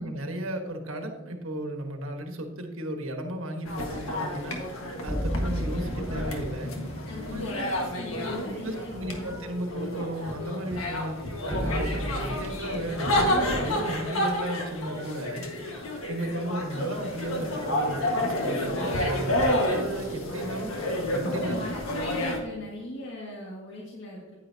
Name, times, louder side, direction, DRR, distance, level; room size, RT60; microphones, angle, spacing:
voice 1, 0.0-6.7 7.2-7.5 8.6-15.4 16.1-20.7 21.1-21.8, right 1 dB, 80° right, 4 dB, 1.4 m, -34 dB
sound 1, 3.6-22.4, left 1 dB, 85° left, 1.6 m, -30 dB
sound 2, 5.1-7.3 11.5-14.7, equal, 10° left, 0.4 m, -34 dB
voice 2, 7.1-9.4 21.4-24.4, left 1 dB, 60° left, -4 dB, 1.9 m, -39 dB
sound 3, 7.4-10.3 10.9-12.9 13.2-14.3, equal, 25° right, 2.8 m, -48 dB
9.6 x 9.6 x 2.8 m, 1.1 s
head